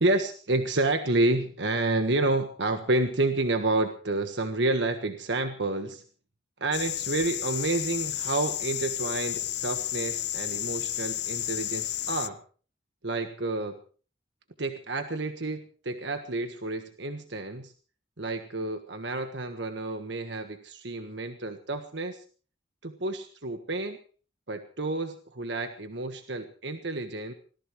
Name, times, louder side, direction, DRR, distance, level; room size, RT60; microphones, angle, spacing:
voice 1, 0.0-6.0 6.6-12.4 13.0-13.8 14.6-17.7 18.2-22.2 22.8-24.0 24.5-27.3, right 2 dB, 85° right, 7 dB, 1.5 m, -29 dB
sound 1, 6.7-12.3, left 13 dB, 70° left, 0.7 m, -32 dB
24.5 x 18.0 x 3.2 m, 0.40 s
head